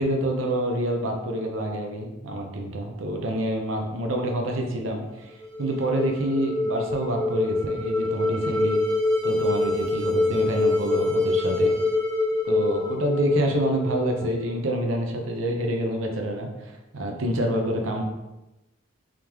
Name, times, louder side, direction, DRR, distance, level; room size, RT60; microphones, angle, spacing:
voice 1, 0.0-8.8 9.2-11.7 12.4-18.0, right 1 dB, 85° right, 2 dB, 0.6 m, -27 dB
sound 1, 5.3-14.5, left 2 dB, 45° right, 0.9 m, -25 dB
3.6 x 3.5 x 3.0 m, 1.0 s
head